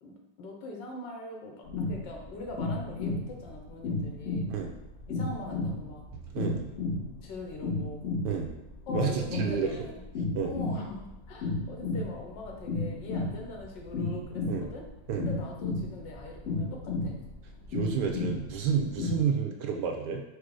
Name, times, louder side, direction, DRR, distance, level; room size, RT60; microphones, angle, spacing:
voice 1, 0.0-4.5 5.1-6.1 7.2-8.0 8.9-10.0 10.4-14.8 15.3-17.2, left 2 dB, 80° left, 1 dB, 1.5 m, -42 dB
sound 1, 1.7-19.3, left 3 dB, 60° left, 0.7 m, -33 dB
voice 2, 6.1-6.6 8.2-8.5 8.9-9.8 10.3-10.6 14.4-14.7 15.1-15.3 17.7-20.2, right 7 dB, 75° right, 3 dB, 1.1 m, -30 dB
4.9 x 2.0 x 4.7 m, 0.96 s
omnidirectional pair, 2.0 m